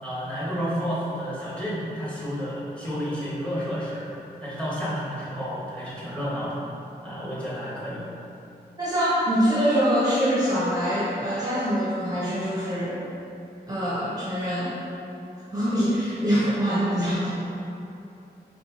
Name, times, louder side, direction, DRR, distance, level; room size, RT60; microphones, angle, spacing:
voice 1, 0.0-4.1 4.4-6.6 7.0-8.0, equal, 5° left, -9 dB, 1.5 m, -31 dB
voice 2, 8.8-13.0 13.7-14.7 15.5-17.3, equal, 20° right, -9 dB, 0.9 m, -24 dB
4.3 x 3.3 x 2.9 m, 2.8 s
cardioid pair, 75°, 17 cm